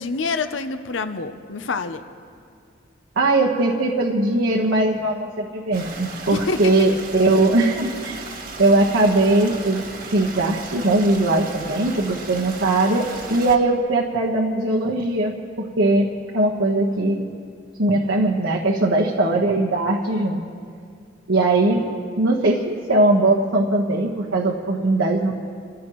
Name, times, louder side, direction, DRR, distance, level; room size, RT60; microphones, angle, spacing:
voice 1, 0.0-2.0 6.3-6.7, left 4 dB, 70° left, 9 dB, 0.7 m, -27 dB
voice 2, 3.2-8.2 8.6-9.8 10.1-17.2 17.8-20.4 21.3-21.9 22.2-25.3, right 2 dB, 85° right, -2 dB, 1.3 m, -20 dB
Stream, 5.7-13.6, right 3 dB, 50° right, 1.5 m, -36 dB
27.5 x 15.5 x 3.1 m, 2.3 s
head